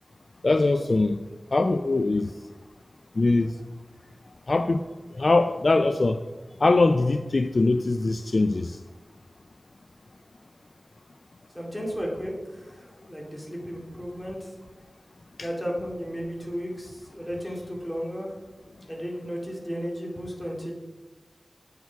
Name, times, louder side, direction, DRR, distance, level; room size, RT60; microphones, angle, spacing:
voice 1, 0.4-1.2 1.5-2.3 3.2-3.6 4.5-4.8 5.1-6.2 6.6-8.8 15.4-15.5, left 3 dB, 60° left, 9 dB, 0.3 m, -22 dB
voice 2, 11.5-14.5 15.4-18.3 18.9-20.7, equal, 10° left, -2 dB, 2.2 m, -34 dB
8.1 x 6.6 x 4.6 m, 1.2 s
wide cardioid pair, 75°, 0 cm